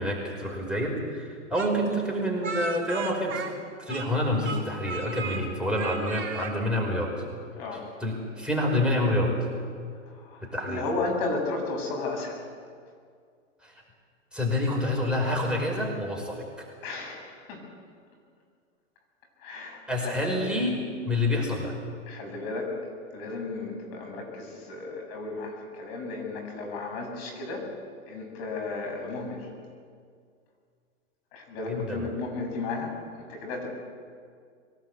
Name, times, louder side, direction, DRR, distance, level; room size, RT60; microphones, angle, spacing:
voice 1, 0.0-3.4 3.8-7.2 8.0-9.4 10.4-10.8 13.6-13.7 14.3-16.7 19.9-21.7 31.7-32.1, left 1 dB, ahead, -2 dB, 5.1 m, -28 dB
Speech, 1.5-4.2 4.4-5.4 5.7-6.5, right 4 dB, 30° right, 5.2 m, -36 dB
voice 2, 10.1-12.5 16.8-17.7 19.4-20.3 22.1-22.7 23.1-27.6 28.1-29.5 31.3-33.7, left 3 dB, 50° left, 2 dB, 7.5 m, -34 dB
23.5 x 18.5 x 8.1 m, 2.1 s
hypercardioid pair, 120°, 37 cm